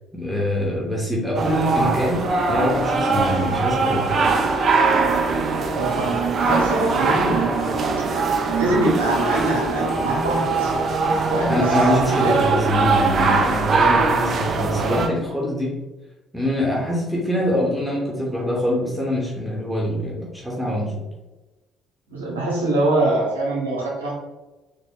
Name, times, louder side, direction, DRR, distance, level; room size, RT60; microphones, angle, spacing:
voice 1, 0.1-4.1 11.5-15.7 16.3-21.0, equal, ahead, -4 dB, 1.3 m, -24 dB
sound 1, 1.3-15.1, right 4 dB, 45° right, 0.5 m, -21 dB
voice 2, 5.7-7.8 8.6-10.7 11.3-11.6 12.2-12.4 22.1-24.1, right 2 dB, 80° right, -4 dB, 1.1 m, -23 dB
4.0 x 3.2 x 3.1 m, 1.1 s
figure-of-eight pair, 50°, 0 cm